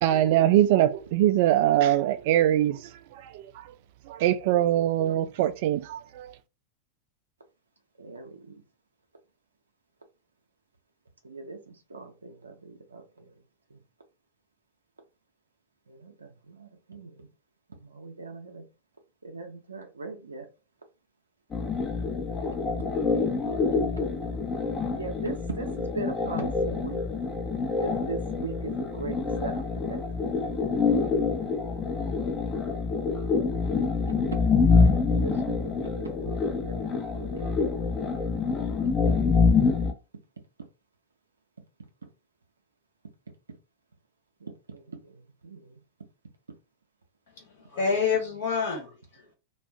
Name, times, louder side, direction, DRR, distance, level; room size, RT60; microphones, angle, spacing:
voice 1, 0.0-2.9 3.2-3.6 4.1-6.3, right 12 dB, 50° right, 0.4 m, -23 dB
voice 2, 8.0-8.4 11.2-13.3 13.7-13.8 15.9-17.3 17.8-18.6 19.2-20.5 23.3-24.0 24.9-27.0 27.8-30.3 34.3-34.4 35.0-37.7 44.4-45.7, right 3 dB, 75° right, 0.7 m, -40 dB
sound 1, 21.5-39.9, left 4 dB, 25° left, 0.7 m, -26 dB
voice 3, 47.4-49.3, left 5 dB, 55° left, 1.1 m, -28 dB
2.5 x 2.4 x 3.4 m
figure-of-eight pair, 90°, 0 cm